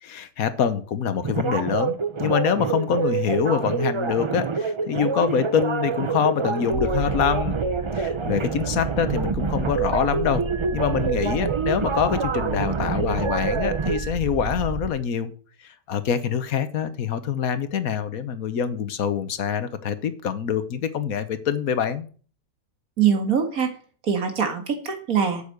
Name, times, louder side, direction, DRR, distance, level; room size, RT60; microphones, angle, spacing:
voice 1, 0.0-7.6 8.0-10.4 10.7-15.3 15.6-22.1, left 7 dB, 75° left, 12 dB, 1.4 m, -25 dB
sound 1, 1.2-14.0, right 5 dB, 45° right, 0.3 m, -27 dB
sound 2, 6.7-14.9, right 6 dB, 25° right, 0.8 m, -32 dB
voice 2, 23.0-23.7 24.0-25.4, right 7 dB, 70° right, 5 dB, 2.2 m, -23 dB
8.3 x 7.1 x 6.5 m, 0.42 s
omnidirectional pair, 1.5 m